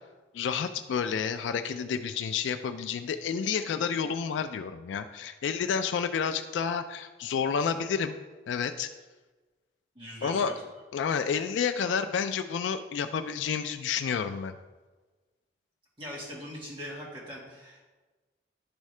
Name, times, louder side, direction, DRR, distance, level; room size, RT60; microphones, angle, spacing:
voice 1, 0.3-8.2 8.5-8.9 10.2-10.6 10.9-14.6, left 6 dB, 90° left, 10 dB, 0.3 m, -30 dB
voice 2, 9.9-10.4 16.0-17.8, equal, 30° right, -5 dB, 1.7 m, -41 dB
10.0 x 3.6 x 3.2 m, 1.3 s
head